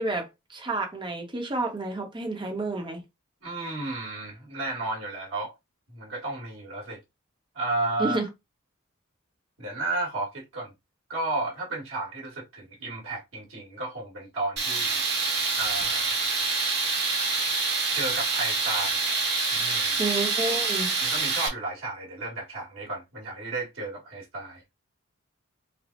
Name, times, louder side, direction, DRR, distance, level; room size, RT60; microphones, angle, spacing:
voice 1, 0.0-3.0 8.0-8.3 20.0-20.9, right 2 dB, 25° right, 0.8 m, -30 dB
voice 2, 3.4-5.5 5.9-7.0 7.5-8.2 9.6-10.7 11.1-15.0 15.6-16.1 17.9-19.0 19.5-20.0 21.0-24.6, right 2 dB, 75° right, 1.6 m, -33 dB
Tools, 14.6-21.5, right 3 dB, 55° right, 1.2 m, -26 dB
3.4 x 2.0 x 3.7 m
head